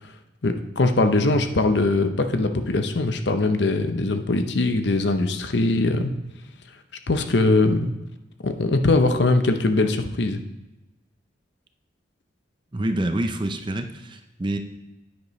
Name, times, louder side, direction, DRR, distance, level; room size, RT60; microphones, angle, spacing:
voice 1, 0.4-6.1 7.1-7.9 8.4-10.4, left 2 dB, 60° left, 7 dB, 0.7 m, -21 dB
voice 2, 12.7-14.6, right 1 dB, 25° right, 7 dB, 0.6 m, -27 dB
9.8 x 9.5 x 3.2 m, 1.0 s
head